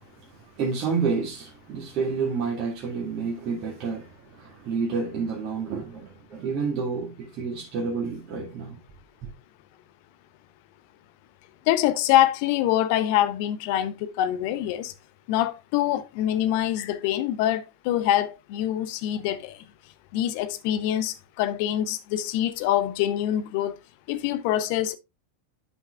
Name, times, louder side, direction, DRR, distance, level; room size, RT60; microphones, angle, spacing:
voice 1, 0.5-8.8 9.2-9.3, right 5 dB, 40° right, 2.1 m, -29 dB
voice 2, 11.7-14.9 15.3-19.6 20.1-23.8 24.1-25.0, left 12 dB, 45° left, 0.9 m, -25 dB
11.0 x 5.7 x 2.5 m
figure-of-eight pair, 90°, 0 cm